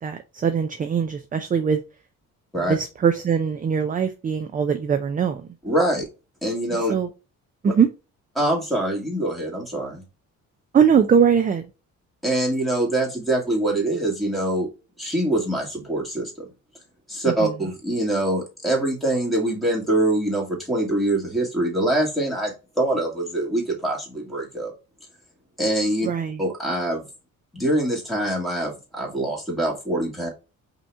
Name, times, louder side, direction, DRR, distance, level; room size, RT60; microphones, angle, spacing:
voice 1, 0.0-1.8 2.5-5.5 6.9-7.1 7.6-7.9 10.7-11.6 17.3-17.5 26.0-26.4, right 7 dB, 25° right, 0.5 m, -21 dB
voice 2, 5.6-6.1 6.4-6.9 7.6-7.7 8.4-10.0 12.2-14.7 15.0-16.3 17.1-24.7 25.6-26.1 26.4-27.0 27.5-30.3, right 1 dB, ahead, 2.2 m, -24 dB
5.3 x 2.9 x 3.4 m
cardioid pair, 130°, 32 cm